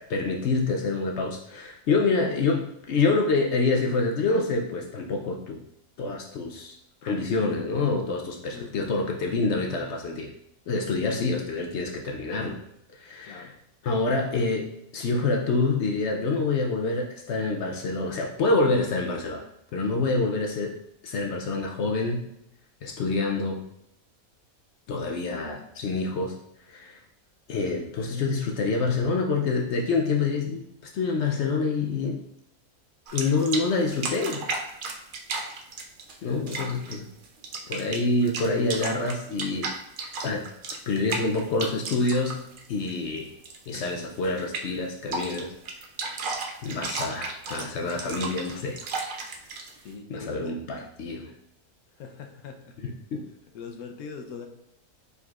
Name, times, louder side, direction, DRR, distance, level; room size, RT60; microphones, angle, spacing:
voice 1, 0.0-5.6 6.0-6.8 7.0-10.3 10.7-12.6 12.9-13.5 13.8-14.7 14.9-19.5 19.7-20.7 21.0-22.2 22.8-23.6 24.9-26.3 26.7-27.0 27.5-32.2 33.1-34.5 36.2-37.1 37.7-39.7 40.2-40.5 40.9-42.4 42.7-43.3 43.7-45.5 46.6-48.8 49.1-49.3 50.1-51.3 53.1-53.2, left 3 dB, 65° left, 1 dB, 0.7 m, -27 dB
voice 2, 13.2-13.5 36.2-37.0 49.8-50.5 51.9-52.8 53.5-54.5, left 5 dB, 80° left, 4 dB, 1.1 m, -42 dB
sound 1, 33.1-33.6 33.9-36.2 36.5-37.0 37.2-43.2 43.4-43.9 44.2-44.3 44.5-44.8 45.1-49.8, right 3 dB, 80° right, 0.4 m, -33 dB
4.8 x 3.9 x 2.4 m, 0.80 s
omnidirectional pair, 1.5 m